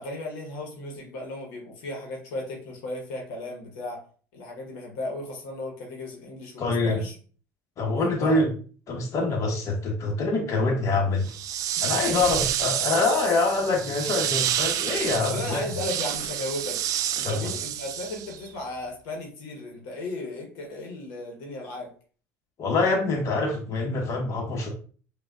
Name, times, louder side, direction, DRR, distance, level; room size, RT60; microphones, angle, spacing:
voice 1, 0.0-4.0 4.3-7.1 7.9-8.5 11.9-12.5 15.0-16.8 17.2-21.9, left 2 dB, 75° left, 1 dB, 1.0 m, -35 dB
voice 2, 6.6-7.0 7.8-8.5 8.9-11.3 11.8-15.6 17.2-17.5 22.6-24.7, left 3 dB, 45° left, 0 dB, 1.1 m, -25 dB
sound 1, 11.2-18.5, right 10 dB, 55° right, 0.3 m, -29 dB
5.0 x 2.3 x 2.3 m, 0.42 s
supercardioid pair, 90°, 7 cm